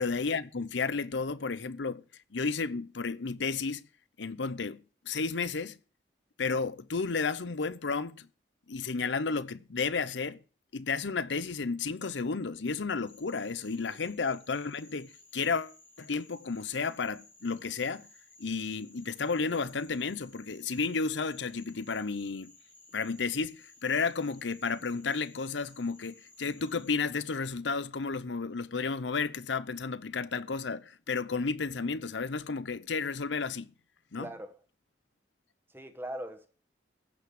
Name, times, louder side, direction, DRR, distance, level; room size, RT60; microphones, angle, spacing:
voice 1, 0.0-2.0 2.3-3.9 4.2-5.8 6.4-8.3 8.7-10.4 10.7-18.1 18.4-22.5 22.9-33.7 34.1-34.3, left 4 dB, 90° left, 0.8 m, -32 dB
Frog, 13.1-26.9, left 2 dB, 10° left, 2.0 m, -58 dB
voice 2, 34.2-34.5 35.7-36.5, right 1 dB, 10° right, 1.5 m, -41 dB
15.5 x 6.0 x 8.2 m
head